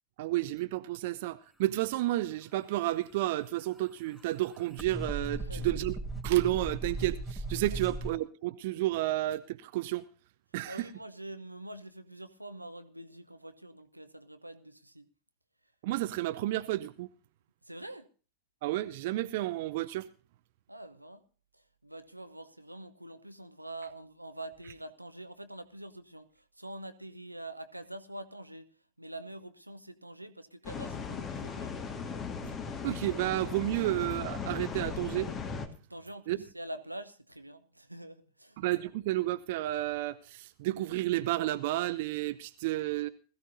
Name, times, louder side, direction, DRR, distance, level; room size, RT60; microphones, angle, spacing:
voice 1, 0.2-5.9 6.2-10.0 10.5-10.9 15.8-17.1 18.6-20.1 32.4-32.5 32.8-35.3 36.3-36.4 38.6-43.1, right 16 dB, 50° right, 0.7 m, -31 dB
sound 1, 2.9-8.1, right 2 dB, ahead, 2.9 m, -38 dB
voice 2, 5.4-5.8 10.7-15.1 17.6-18.1 20.7-21.2 21.5-28.7 29.0-31.8 35.9-38.6, right 1 dB, 85° right, 0.8 m, -45 dB
sound 2, 30.6-35.7, left 6 dB, 30° left, 1.7 m, -38 dB
20.5 x 14.5 x 2.7 m
figure-of-eight pair, 90°, 0 cm